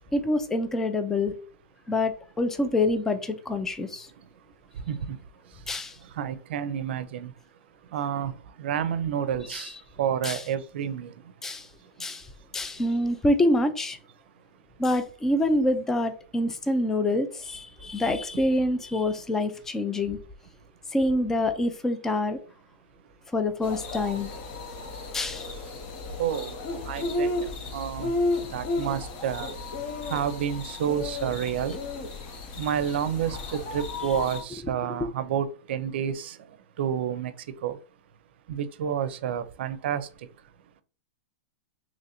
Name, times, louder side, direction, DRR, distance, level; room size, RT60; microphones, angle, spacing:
voice 1, 0.1-1.3 1.9-4.1 5.7-6.0 9.5-9.6 10.2-10.4 11.4-11.7 12.0-12.3 12.5-14.0 14.8-20.2 20.9-22.4 23.3-24.3 25.1-25.5 34.9-35.0, left 1 dB, 5° left, 0.3 m, -26 dB
voice 2, 6.2-7.3 7.9-8.3 8.6-9.7 10.0-11.1 26.2-26.5 26.9-27.3 27.7-28.1 28.5-29.5 30.1-31.8 32.6-36.3 36.8-37.3 37.6-37.8 38.5-40.0, right 9 dB, 65° right, 0.5 m, -29 dB
sound 1, 23.6-34.4, left 2 dB, 35° left, 0.7 m, -33 dB
3.0 x 2.5 x 4.2 m
supercardioid pair, 160°, 7 cm